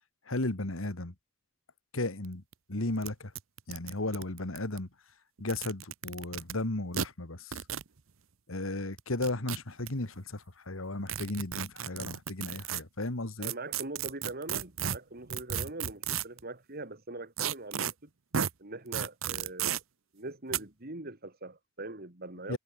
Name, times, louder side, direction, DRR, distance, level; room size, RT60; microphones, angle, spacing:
voice 1, 0.3-1.1 1.9-2.4 2.7-3.3 3.7-4.9 5.4-7.6 8.5-13.5 22.5-22.6, left 2 dB, 85° left, 2.2 m, -35 dB
sound 1, 2.2-2.3 2.5-2.6 3.0-3.1 3.3-4.8 5.4-6.5 6.9-7.1 7.5-7.9 9.0-9.9 11.1-12.8 13.4-16.4 17.4-17.9 18.3-18.5 18.9-19.8 20.5-20.6, right 9 dB, 80° right, 0.9 m, -33 dB
voice 2, 13.4-17.9 18.6-19.8 20.1-22.6, right 2 dB, 50° right, 3.0 m, -42 dB
head